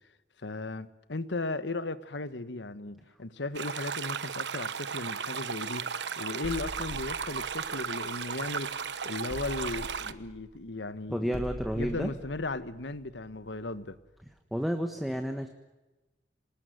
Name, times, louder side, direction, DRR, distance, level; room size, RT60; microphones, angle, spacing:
voice 1, 0.4-11.4 11.7-14.0, left 2 dB, 80° left, 13 dB, 1.3 m, -36 dB
sound 1, 3.5-10.1, right 6 dB, 75° right, 1.0 m, -35 dB
sound 2, 6.4-8.8 9.3-14.0, right 1 dB, 50° right, 2.0 m, -44 dB
voice 2, 11.1-12.1 14.5-15.5, equal, ahead, 5 dB, 1.3 m, -31 dB
26.5 x 19.5 x 9.3 m, 1.1 s
head